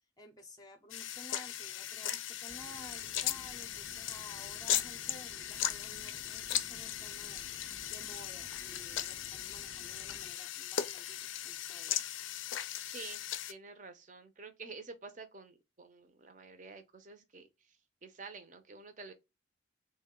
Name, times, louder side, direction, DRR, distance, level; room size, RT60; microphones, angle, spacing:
voice 1, 0.2-12.0, left 1 dB, 20° left, 0.5 m, -54 dB
sound 1, 0.9-13.5, left 11 dB, 80° left, 0.4 m, -38 dB
sound 2, 2.5-10.3, equal, 85° right, 0.9 m, -56 dB
voice 2, 12.8-13.2 13.5-17.8 18.0-19.1, right 4 dB, 40° right, 0.6 m, -49 dB
3.6 x 2.2 x 3.6 m
head